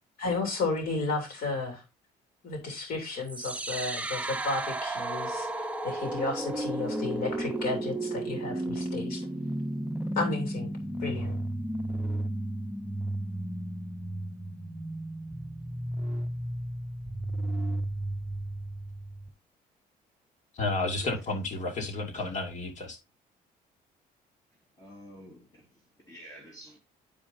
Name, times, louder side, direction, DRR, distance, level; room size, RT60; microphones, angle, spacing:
voice 1, 0.2-1.8 2.4-9.3 10.1-10.7 11.0-11.4, left 3 dB, 60° left, 3.0 m, -33 dB
sound 1, 3.3-19.3, right 1 dB, 10° right, 0.8 m, -33 dB
voice 2, 20.5-23.0, left 2 dB, 45° left, 2.3 m, -31 dB
voice 3, 24.8-26.8, equal, 20° left, 2.2 m, -49 dB
11.5 x 5.1 x 2.6 m
cardioid pair, 110°, 17 cm